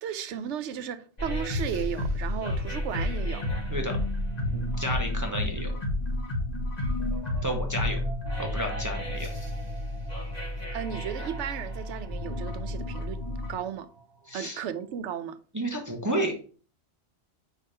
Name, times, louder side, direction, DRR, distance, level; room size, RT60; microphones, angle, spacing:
voice 1, 0.0-3.5 10.7-13.2 13.5-13.9 14.3-15.4, right 9 dB, 90° right, 0.9 m, -34 dB
sound 1, 1.2-13.5, left 1 dB, 35° left, 1.5 m, -31 dB
sound 2, 2.8-14.6, right 3 dB, 5° left, 1.4 m, -42 dB
voice 2, 4.5-5.7 7.4-8.0 8.4-9.3 14.3-14.6 15.5-16.3, equal, 15° right, 0.9 m, -31 dB
4.9 x 3.6 x 5.5 m
omnidirectional pair, 1.2 m